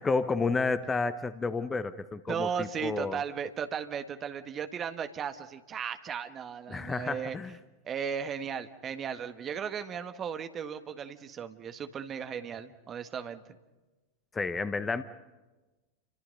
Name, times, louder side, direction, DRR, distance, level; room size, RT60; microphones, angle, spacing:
voice 1, 0.0-3.2 6.7-7.6 14.3-15.0, left 4 dB, 15° left, 13 dB, 1.0 m, -31 dB
voice 2, 2.3-7.4 7.8-13.4, right 7 dB, 25° right, 8 dB, 1.6 m, -36 dB
29.5 x 25.0 x 5.4 m, 1.1 s
figure-of-eight pair, 90°, 0 cm